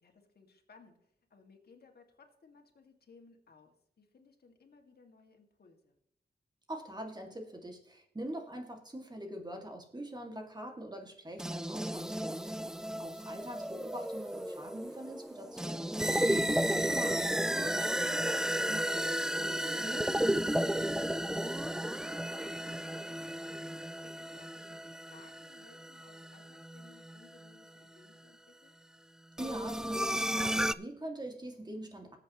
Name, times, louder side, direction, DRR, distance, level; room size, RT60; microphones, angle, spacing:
voice 1, 0.0-6.0 12.6-12.9 20.4-23.0 24.0-28.8, left 4 dB, 65° left, 3 dB, 2.1 m, -61 dB
voice 2, 6.7-15.9 16.4-20.1 29.4-32.2, right 1 dB, 25° right, 3 dB, 2.2 m, -44 dB
sound 1, 11.4-27.5 29.4-30.7, right 1 dB, 5° right, 0.3 m, -33 dB
19.0 x 8.0 x 3.0 m, 0.75 s
wide cardioid pair, 75°, 17 cm